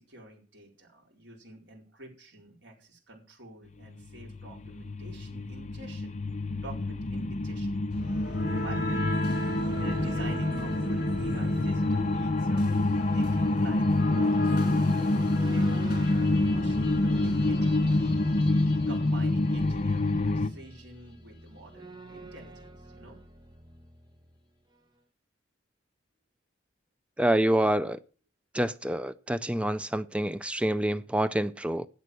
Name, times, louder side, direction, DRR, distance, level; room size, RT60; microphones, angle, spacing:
voice 1, 0.0-6.2 6.5-7.8 8.6-9.0 9.8-12.6 13.1-15.7 16.0-18.0 18.9-23.2, right 2 dB, 80° right, 4.6 m, -48 dB
sound 1, 3.8-20.5, left 2 dB, 40° left, 0.7 m, -27 dB
sound 2, 7.7-24.4, right 1 dB, 25° right, 1.3 m, -44 dB
sound 3, 7.9-19.8, equal, 60° left, 3.2 m, -38 dB
voice 2, 27.2-28.0 28.5-31.9, right 1 dB, 5° right, 0.5 m, -27 dB
11.0 x 8.2 x 6.3 m
head